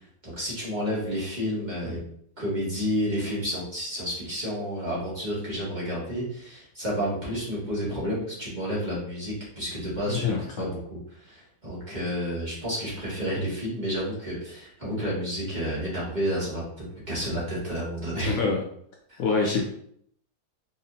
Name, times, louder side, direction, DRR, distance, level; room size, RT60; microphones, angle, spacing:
voice 1, 0.2-2.0 2.4-18.4 19.1-19.2, equal, 30° right, -8 dB, 1.7 m, -30 dB
voice 2, 10.1-10.6 18.2-18.6 19.2-19.6, left 4 dB, 70° left, 0 dB, 0.9 m, -26 dB
5.0 x 2.8 x 2.6 m, 0.68 s
omnidirectional pair, 1.7 m